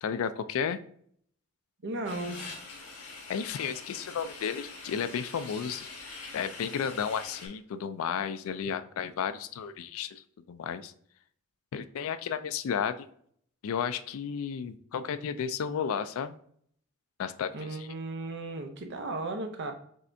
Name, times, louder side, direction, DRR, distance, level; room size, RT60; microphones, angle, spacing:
voice 1, 0.0-0.8 3.3-5.9 6.3-10.9 11.7-13.1 13.6-16.4 17.2-17.9, left 7 dB, 65° left, 12 dB, 0.3 m, -33 dB
voice 2, 1.8-2.6 17.5-19.7, right 2 dB, 55° right, 5 dB, 0.7 m, -35 dB
sound 1, 2.0-7.5, left 3 dB, 80° left, 1.3 m, -44 dB
5.4 x 3.2 x 2.6 m, 0.64 s
head